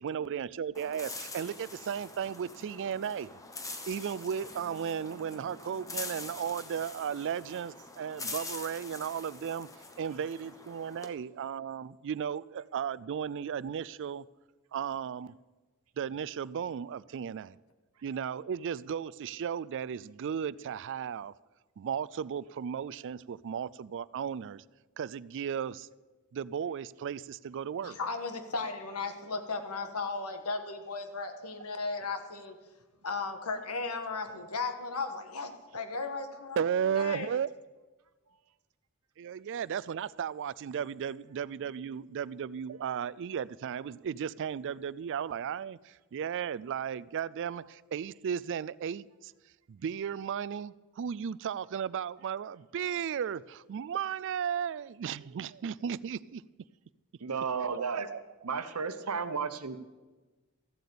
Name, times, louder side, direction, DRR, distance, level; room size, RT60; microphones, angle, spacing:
voice 1, 0.0-3.3 3.9-9.7 10.0-14.2 14.7-15.3 16.0-17.6 18.0-21.3 21.8-24.6 25.0-25.9 26.3-28.0 35.7-35.8 36.6-37.5 39.2-49.3 49.7-56.4 57.9-58.2, right 8 dB, 55° right, 20 dB, 0.3 m, -35 dB
sound 1, 0.7-11.1, left 3 dB, 15° left, 1.0 m, -44 dB
voice 2, 27.8-32.5 33.0-37.3, left 4 dB, 80° left, 7 dB, 1.6 m, -36 dB
voice 3, 57.2-58.1 58.4-59.8, right 5 dB, 80° right, 10 dB, 1.0 m, -33 dB
14.5 x 7.9 x 8.5 m, 1.2 s
head